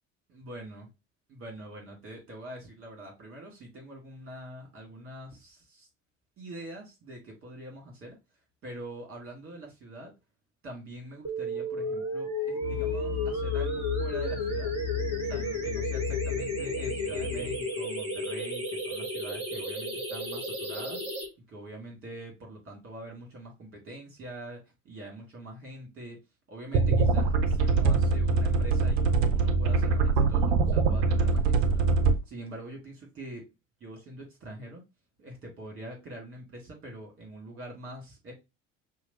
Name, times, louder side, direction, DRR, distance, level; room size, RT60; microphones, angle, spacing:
voice 1, 0.3-0.9 1.3-5.9 6.4-8.2 8.6-10.1 10.6-14.7 15.2-21.0 21.5-26.2 26.5-33.5 33.8-34.8 35.2-38.3, right 1 dB, 35° right, 2.0 m, -44 dB
sound 1, 11.2-21.2, left 1 dB, 15° right, 2.4 m, -33 dB
sound 2, 12.6-18.1, left 12 dB, 60° left, 0.9 m, -35 dB
sound 3, 26.7-32.1, right 4 dB, 55° right, 0.7 m, -23 dB
5.7 x 2.3 x 2.7 m
figure-of-eight pair, 65°, 39 cm